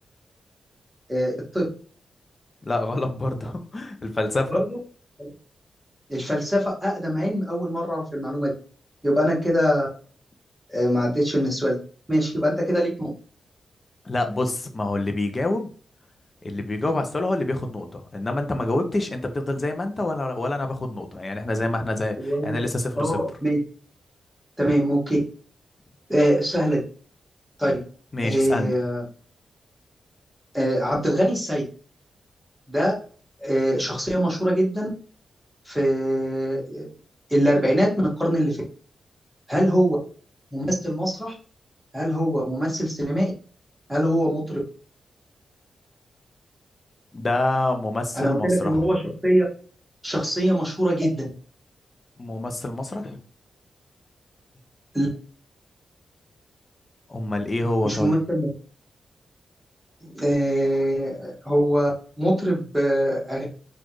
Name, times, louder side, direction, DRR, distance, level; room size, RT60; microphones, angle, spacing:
voice 1, 1.1-1.6 4.5-4.8 5.2-5.3 6.1-8.5 9.0-9.9 10.7-11.8 12.1-13.1 22.2-22.5 23.0-23.6 24.6-25.2 26.1-26.8 27.6-27.7 28.2-29.0 30.5-31.6 32.7-32.9 33.4-34.9 35.6-36.9 37.3-37.9 38.2-38.6 39.5-40.0 40.5-41.3 41.9-43.3 43.9-44.6 48.1-49.5 50.0-51.3 54.9-55.1 57.8-58.5 60.0-61.9 62.2-63.4, equal, 5° right, -3 dB, 1.6 m, -23 dB
voice 2, 2.6-4.6 14.0-15.7 16.4-23.2 28.1-28.7 47.1-48.9 52.2-53.2 57.1-58.2, left 2 dB, 30° left, 6 dB, 0.7 m, -27 dB
4.1 x 2.5 x 3.1 m, 0.41 s
wide cardioid pair, 125°, 0 cm